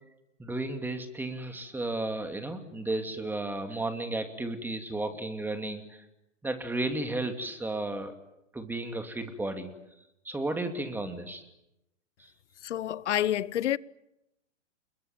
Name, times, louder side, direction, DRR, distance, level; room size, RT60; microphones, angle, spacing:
voice 1, 0.4-6.0 6.4-8.1 8.5-9.7 10.2-11.4, right 2 dB, 5° right, 2.6 m, -33 dB
voice 2, 12.6-13.8, left 12 dB, 65° left, 1.0 m, -28 dB
29.0 x 21.5 x 9.0 m
hypercardioid pair, 130°, 37 cm